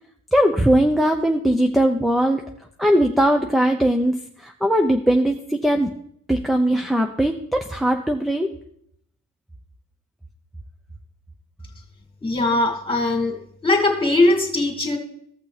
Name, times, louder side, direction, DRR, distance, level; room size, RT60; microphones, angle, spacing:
voice 1, 0.3-2.4 2.8-4.1 4.4-5.9 6.3-8.5, right 1 dB, ahead, 4 dB, 0.8 m, -19 dB
voice 2, 12.2-13.4 13.6-15.0, left 2 dB, 15° left, 1 dB, 2.6 m, -20 dB
15.0 x 5.9 x 3.4 m, 0.69 s
cardioid pair, 90°, 30 cm